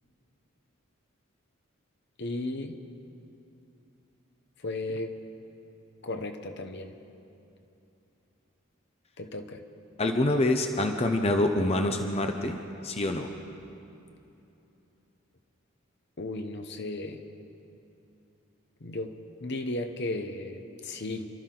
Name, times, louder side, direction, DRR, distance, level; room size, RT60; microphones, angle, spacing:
voice 1, 2.2-2.8 4.6-5.1 6.0-6.9 9.2-9.6 16.2-17.2 18.8-21.3, left 2 dB, 55° left, 6 dB, 0.9 m, -35 dB
voice 2, 10.0-12.6 12.8-13.3, left 1 dB, 30° left, 5 dB, 0.8 m, -26 dB
28.0 x 13.0 x 3.9 m, 2.8 s
head